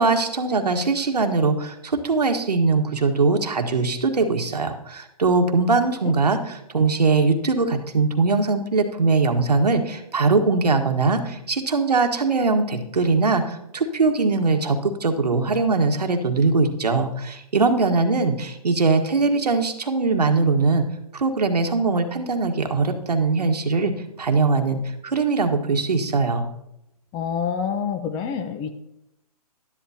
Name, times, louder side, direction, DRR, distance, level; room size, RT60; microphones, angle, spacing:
voice 1, 0.0-20.8 21.1-23.9 24.2-26.5, right 3 dB, 90° right, 5 dB, 1.6 m, -21 dB
voice 2, 27.1-28.7, left 7 dB, 20° left, 8 dB, 0.9 m, -27 dB
12.0 x 11.0 x 2.8 m, 0.83 s
hypercardioid pair, 145°, 20 cm